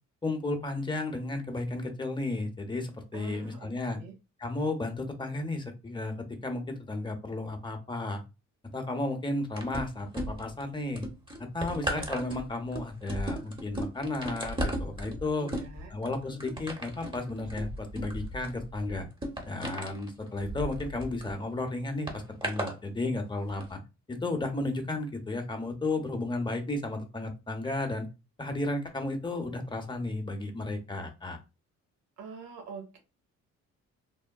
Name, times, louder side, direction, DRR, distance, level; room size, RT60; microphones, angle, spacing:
voice 1, 0.2-4.0 4.4-8.2 8.7-11.1 11.4-15.5 15.9-19.1 19.4-23.8 24.1-28.1 28.4-31.4, left 2 dB, 15° left, 5 dB, 0.7 m, -33 dB
voice 2, 3.1-4.1 15.4-15.9 32.2-33.0, right 4 dB, 85° right, 3 dB, 1.1 m, -45 dB
sound 1, 9.6-10.6 11.0-21.3 22.1-22.8 23.5-23.6, equal, 15° right, 0.9 m, -36 dB
3.5 x 2.1 x 2.2 m, 0.26 s
cardioid pair, 90°, 30 cm